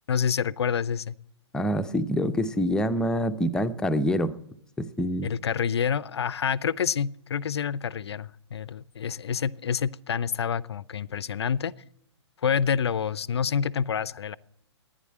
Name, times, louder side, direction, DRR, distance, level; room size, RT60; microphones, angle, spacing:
voice 1, 0.1-1.1 5.2-11.7 12.4-14.4, left 7 dB, 65° left, 0.4 m, -27 dB
voice 2, 1.5-4.3 4.8-5.3, equal, 5° left, 0.5 m, -26 dB
11.0 x 9.5 x 7.7 m
figure-of-eight pair, 120°, 15 cm